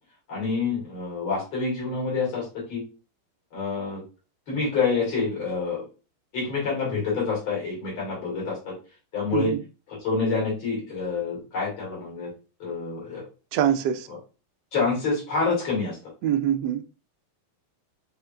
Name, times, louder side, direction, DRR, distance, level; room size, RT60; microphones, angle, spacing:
voice 1, 0.3-2.8 3.5-4.0 4.5-5.8 6.3-8.7 9.1-9.5 10.0-12.3 12.6-13.2 14.7-16.0, left 4 dB, 70° left, -4 dB, 3.1 m, -27 dB
voice 2, 9.3-9.6 13.5-14.1 16.2-16.9, right 10 dB, 80° right, 7 dB, 0.9 m, -24 dB
5.5 x 3.4 x 2.4 m, 0.33 s
omnidirectional pair, 2.3 m